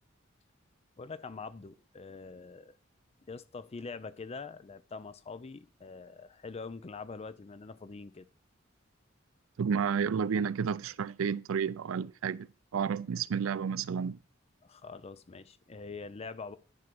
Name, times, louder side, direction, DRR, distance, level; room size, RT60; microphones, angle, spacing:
voice 1, 1.0-2.8 3.2-8.3 14.6-16.6, left 4 dB, 30° left, 0.5 m, -44 dB
voice 2, 9.6-14.2, right 6 dB, 85° right, 0.4 m, -31 dB
10.5 x 3.8 x 6.0 m
head